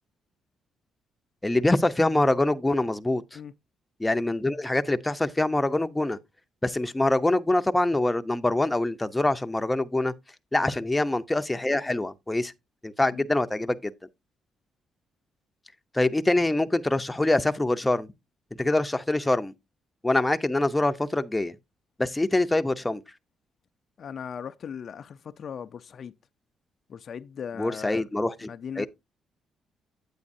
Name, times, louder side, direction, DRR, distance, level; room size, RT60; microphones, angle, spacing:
voice 1, 1.4-3.4 4.0-6.2 6.6-10.1 10.5-12.5 12.8-13.9 15.9-18.1 18.6-19.5 20.0-21.5 22.0-23.0 27.6-28.5 28.8-28.9, left 2 dB, 10° left, 0.7 m, -24 dB
voice 2, 24.0-26.1 26.9-28.1 28.5-28.9, left 7 dB, 55° left, 0.5 m, -38 dB
9.0 x 8.5 x 2.6 m
cardioid pair, 90°, 0 cm